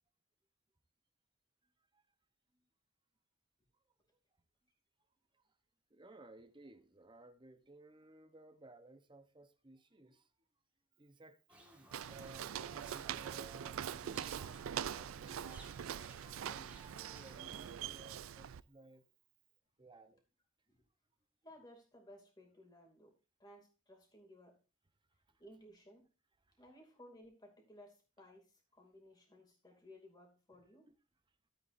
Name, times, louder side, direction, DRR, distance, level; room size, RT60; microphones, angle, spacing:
voice 1, 1.6-2.0 2.5-2.6 5.3-5.5 5.9-10.3 11.0-15.9 16.4-19.0 19.8-20.2 25.3-25.4 26.4-26.6 30.9-31.0, right 2 dB, 20° right, 0.9 m, -59 dB
sound 1, 11.5-17.7, right 2 dB, 5° right, 1.8 m, -59 dB
Walk footsteps, 11.9-18.6, right 9 dB, 70° right, 0.4 m, -43 dB
voice 2, 21.4-23.1 23.4-24.6 25.4-26.1 26.6-30.9, left 1 dB, 20° left, 2.6 m, -59 dB
13.5 x 8.1 x 2.6 m
head